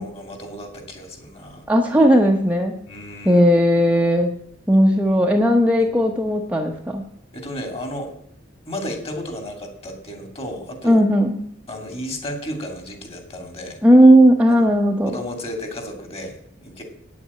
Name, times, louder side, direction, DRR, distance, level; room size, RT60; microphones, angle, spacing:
voice 1, 0.0-1.6 2.9-3.4 7.3-8.1 8.7-11.0 11.7-13.8 14.5-14.7 15.0-16.8, left 1 dB, 30° left, 5 dB, 2.7 m, -33 dB
voice 2, 1.7-2.8 3.2-4.3 4.7-7.0 10.8-11.4 13.8-15.1, equal, 5° right, 1 dB, 0.9 m, -15 dB
9.2 x 8.6 x 8.4 m, 0.69 s
head